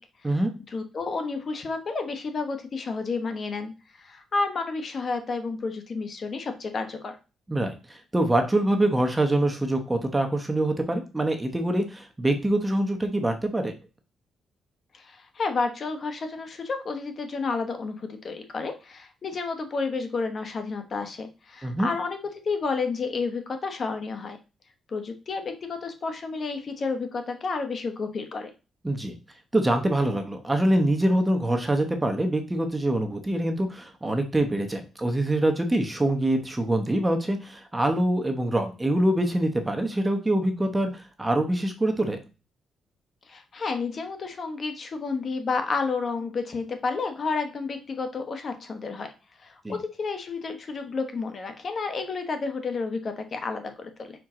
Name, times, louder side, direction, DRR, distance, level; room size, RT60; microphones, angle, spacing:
voice 1, 0.7-3.7 4.0-7.2 14.9-22.2 22.4-24.4 24.9-28.5 43.3-49.1 49.4-54.1, left 4 dB, 40° left, 7 dB, 1.1 m, -31 dB
voice 2, 7.5-13.7 21.6-21.9 28.8-29.1 29.5-42.2 49.6-49.8, right 1 dB, 10° right, 5 dB, 1.0 m, -25 dB
5.5 x 4.6 x 3.7 m, 0.31 s
cardioid pair, 135°, 0 cm